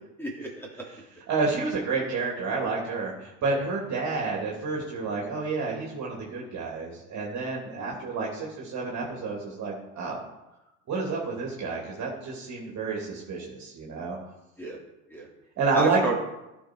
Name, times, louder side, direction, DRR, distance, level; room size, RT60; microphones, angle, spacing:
voice 1, 0.2-0.8 7.7-7.9 14.6-14.8 15.1-15.3 15.7-16.2, right 3 dB, 5° left, -3 dB, 3.2 m, -32 dB
voice 2, 1.3-10.3 10.9-14.2 15.6-16.0, right 4 dB, 40° right, -2 dB, 3.0 m, -29 dB
14.5 x 6.2 x 4.7 m, 0.95 s
hypercardioid pair, 75°, 41 cm